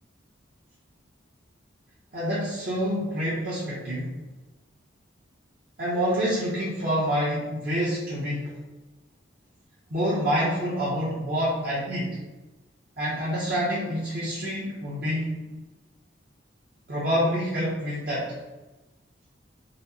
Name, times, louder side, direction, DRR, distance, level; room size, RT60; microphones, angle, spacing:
voice 1, 2.1-4.1 5.8-8.5 9.9-12.2 13.0-15.4 16.9-18.3, equal, 50° right, -8 dB, 0.7 m, -27 dB
4.1 x 2.0 x 2.7 m, 1.1 s
head